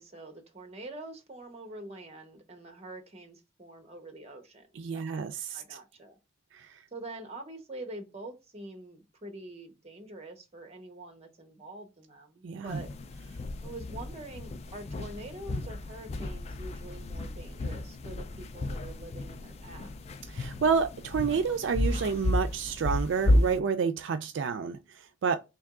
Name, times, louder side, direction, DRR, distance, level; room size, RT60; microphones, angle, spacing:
voice 1, 0.0-4.7 4.9-5.2 5.5-6.2 6.9-12.9 13.6-19.9, right 2 dB, 35° right, 0.9 m, -45 dB
voice 2, 4.7-5.8 6.5-6.8 12.4-12.8 20.3-25.4, right 6 dB, 70° right, 0.3 m, -29 dB
sound 1, 12.7-23.6, left 1 dB, 35° left, 0.3 m, -32 dB
3.4 x 2.9 x 3.6 m
head